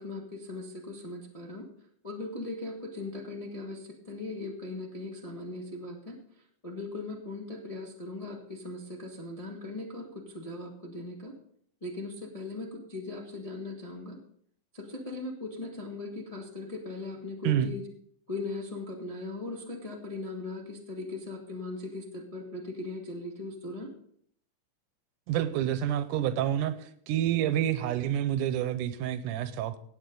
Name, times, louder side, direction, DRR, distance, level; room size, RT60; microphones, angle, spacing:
voice 1, 0.0-1.7 2.0-6.2 6.6-11.3 11.8-14.2 14.7-17.8 18.3-23.9, left 2 dB, 25° left, -1 dB, 0.7 m, -39 dB
voice 2, 25.3-29.8, right 11 dB, 80° right, 12 dB, 2.2 m, -28 dB
17.0 x 8.8 x 3.8 m, 0.64 s
omnidirectional pair, 3.7 m